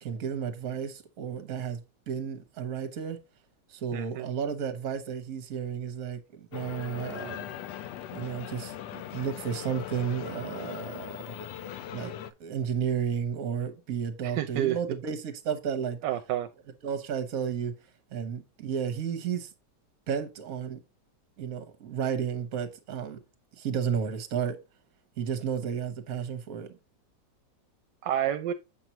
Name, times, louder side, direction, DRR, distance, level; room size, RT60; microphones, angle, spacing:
voice 1, 0.0-3.2 3.7-7.5 8.1-11.1 11.9-12.1 12.4-16.0 16.8-17.7 18.1-19.5 20.1-20.8 21.4-23.2 23.6-24.6 25.2-26.7, right 7 dB, 55° right, 1.4 m, -32 dB
voice 2, 3.9-4.3 14.2-14.8 16.0-16.5 28.0-28.5, right 11 dB, 80° right, 1.2 m, -29 dB
sound 1, 6.5-12.3, left 10 dB, 75° left, 1.2 m, -40 dB
7.6 x 5.8 x 2.9 m
omnidirectional pair, 1.9 m